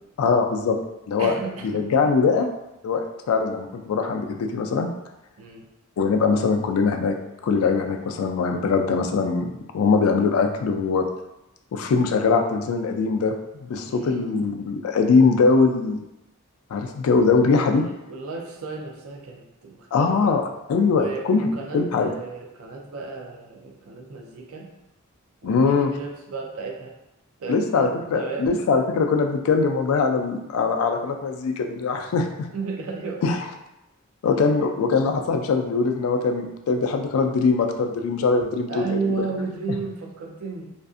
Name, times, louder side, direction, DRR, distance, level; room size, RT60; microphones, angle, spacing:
voice 1, 0.2-0.8 1.1-1.3 1.6-2.5 2.8-4.9 6.0-7.2 7.4-11.1 11.7-13.3 13.6-16.0 16.7-17.8 19.9-20.4 20.7-21.5 21.7-22.1 25.4-25.9 27.5-32.5 33.2-33.4 34.2-39.1, left 4 dB, 85° left, 4 dB, 0.3 m, -22 dB
voice 2, 1.2-1.9 5.4-5.6 13.9-14.3 17.6-20.3 20.9-24.7 25.4-26.9 27.4-28.8 32.5-33.2 34.4-34.6 38.7-40.7, right 4 dB, 85° right, 1 dB, 0.5 m, -33 dB
2.5 x 2.4 x 2.4 m, 0.91 s
head